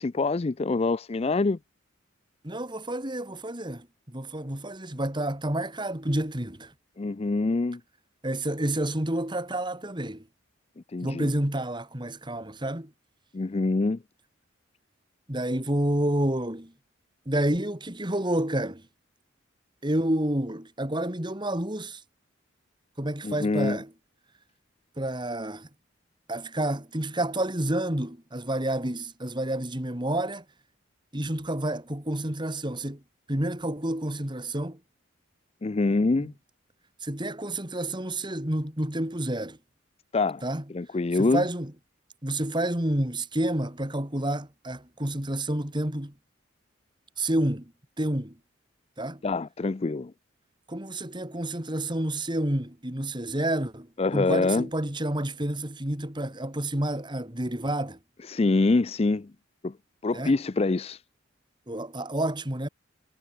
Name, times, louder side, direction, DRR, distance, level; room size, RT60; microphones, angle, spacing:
voice 1, 0.0-1.6 7.0-7.8 10.9-11.3 13.3-14.0 23.2-23.8 35.6-36.3 40.1-40.4 40.7-41.4 49.2-50.1 54.0-54.7 58.3-59.3 59.6-59.7 60.0-61.0, left 3 dB, 30° left, 0.4 m, -25 dB
voice 2, 2.4-6.7 8.2-10.3 11.0-12.9 15.3-16.7 17.3-18.8 19.8-22.0 23.0-23.9 25.0-25.7 26.3-30.4 31.1-33.0 33.3-34.8 36.2-36.3 37.0-39.6 40.4-40.6 41.1-41.7 42.2-46.1 47.2-47.7 48.0-48.4 49.0-49.2 50.7-53.9 54.1-58.0 60.1-60.3 61.7-62.7, right 1 dB, 25° right, 2.7 m, -29 dB
head